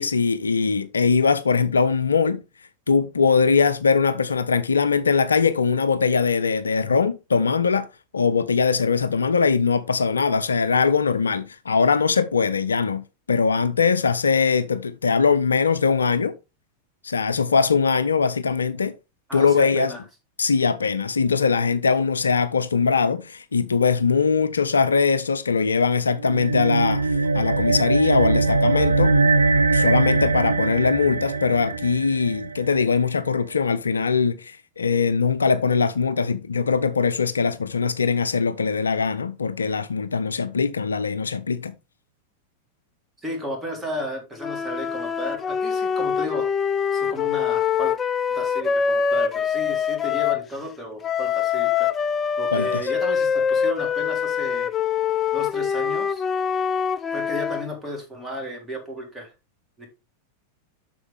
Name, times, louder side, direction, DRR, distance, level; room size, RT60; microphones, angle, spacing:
voice 1, 0.0-2.4 2.9-7.9 8.1-13.0 13.3-16.3 17.0-18.9 19.3-19.9 20.4-29.1 29.7-41.7 52.5-52.8, left 5 dB, 75° left, 0.5 m, -21 dB
voice 2, 19.3-20.0 43.2-46.5 46.9-47.9 48.3-51.9 52.4-54.7 55.3-56.2 57.1-59.3 59.8-59.9, equal, 5° right, 3.4 m, -33 dB
sound 1, 26.2-32.9, right 3 dB, 75° right, 0.6 m, -21 dB
sound 2, 44.4-50.5 51.0-57.7, left 7 dB, 20° left, 0.4 m, -24 dB
7.9 x 6.2 x 3.5 m
figure-of-eight pair, 90°, 0 cm